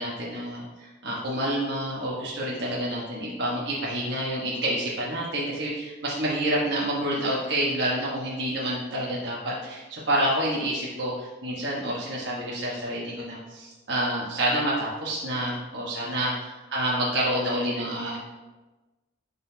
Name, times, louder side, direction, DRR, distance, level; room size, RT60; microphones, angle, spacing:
voice 1, 0.0-16.3 16.7-18.2, right 1 dB, 60° right, -6 dB, 1.3 m, -28 dB
12.0 x 4.1 x 2.8 m, 1.2 s
head